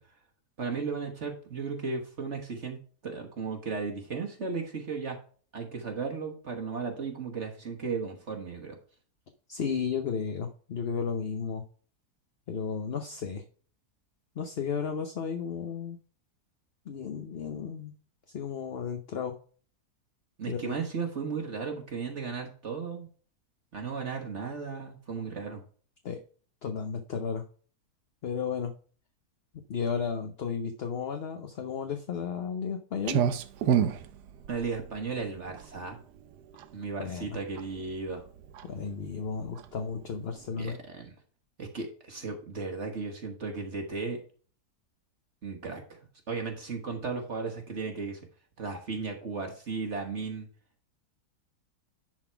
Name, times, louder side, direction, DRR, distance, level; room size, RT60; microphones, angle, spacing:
voice 1, 0.6-2.8 3.0-5.2 5.5-8.8 20.4-23.1 23.7-25.6 34.5-36.0 36.7-38.2 40.6-41.1 41.6-44.2 45.4-46.0 46.3-48.2 48.6-50.5, right 4 dB, 45° right, 2 dB, 1.5 m, -35 dB
voice 2, 9.5-11.6 12.5-13.4 14.4-16.0 16.9-17.9 18.3-19.3 20.5-20.8 26.0-26.2 26.6-27.4 28.2-28.7 29.7-33.2 37.0-37.4 38.6-40.8, left 6 dB, 50° left, 6 dB, 0.9 m, -33 dB
Clock, 33.0-40.5, right 8 dB, 85° right, 1.3 m, -32 dB
10.5 x 4.0 x 4.5 m, 0.42 s
omnidirectional pair, 1.7 m